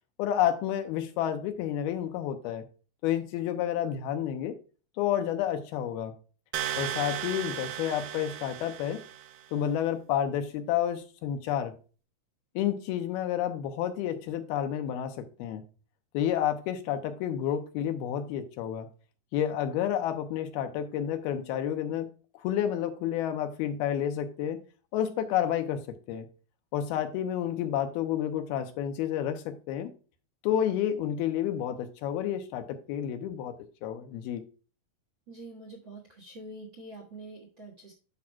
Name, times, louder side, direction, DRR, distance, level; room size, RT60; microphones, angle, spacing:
voice 1, 0.2-2.6 3.0-4.6 5.0-6.1 6.8-9.0 9.5-11.7 12.6-15.6 16.1-18.9 19.3-22.1 22.4-24.6 24.9-26.3 26.7-29.9 30.4-33.5 33.8-34.4, left 10 dB, 80° left, 2.7 m, -30 dB
sound 1, 6.5-9.4, right 12 dB, 80° right, 2.2 m, -35 dB
voice 2, 35.3-37.9, right 2 dB, 50° right, 1.5 m, -45 dB
11.0 x 5.9 x 2.2 m
omnidirectional pair, 4.5 m